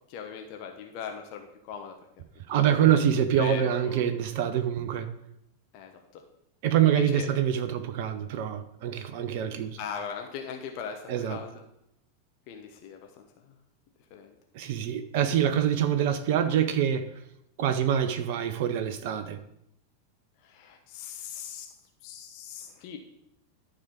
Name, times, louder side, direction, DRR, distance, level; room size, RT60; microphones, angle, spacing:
voice 1, 0.1-1.9 2.8-3.0 3.4-4.0 5.7-6.2 6.8-7.3 9.8-11.5 12.5-13.2 14.1-14.3 20.4-21.7 22.0-23.0, left 7 dB, 45° left, 1.0 m, -40 dB
voice 2, 2.5-5.1 6.6-9.8 11.1-11.4 14.5-17.1 17.6-19.4, right 9 dB, 50° right, 0.7 m, -25 dB
12.0 x 4.8 x 5.1 m
figure-of-eight pair, 90°, 0 cm